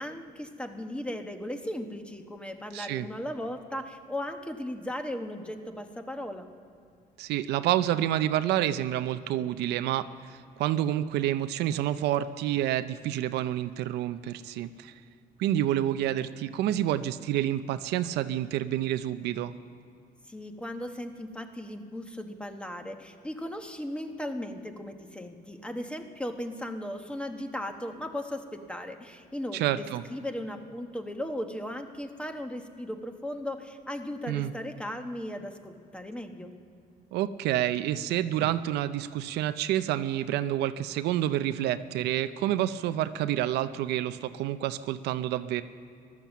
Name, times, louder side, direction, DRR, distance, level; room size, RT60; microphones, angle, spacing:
voice 1, 0.0-6.5 20.3-36.5, left 1 dB, 5° left, 6 dB, 1.1 m, -37 dB
voice 2, 2.7-3.1 7.2-14.9 15.4-19.5 29.5-30.0 34.3-34.5 37.1-45.6, right 12 dB, 80° right, 12 dB, 0.5 m, -28 dB
15.0 x 12.0 x 7.3 m, 2.4 s
cardioid pair, 110°, 17 cm